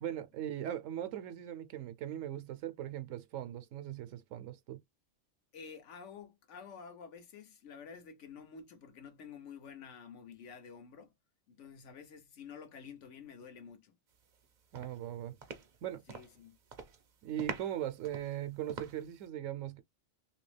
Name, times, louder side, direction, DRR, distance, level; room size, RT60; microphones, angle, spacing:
voice 1, 0.0-4.8 14.7-15.4 15.8-16.0 17.2-19.8, right 11 dB, 75° right, 0.9 m, -39 dB
voice 2, 5.5-11.1 11.5-13.9 16.1-16.6, left 6 dB, 65° left, 1.0 m, -50 dB
sound 1, 14.2-14.4 14.7-16.4 16.7-17.0 17.4-19.2, right 5 dB, 50° right, 0.6 m, -45 dB
3.0 x 2.8 x 3.2 m
omnidirectional pair, 1.4 m